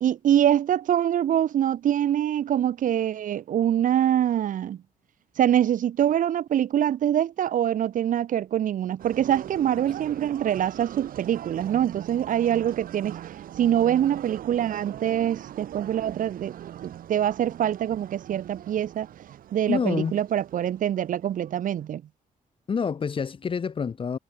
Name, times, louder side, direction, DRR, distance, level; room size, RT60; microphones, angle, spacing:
voice 1, 0.0-4.8 5.4-13.2 13.6-16.5 16.8-19.1 19.5-22.0, right 10 dB, 70° right, 1.6 m, -24 dB
sound 1, 9.0-21.9, right 11 dB, 85° right, 2.3 m, -41 dB
voice 2, 19.7-20.2 22.7-24.2, left 6 dB, 40° left, 7.9 m, -27 dB
wide cardioid pair, 160°, 14 cm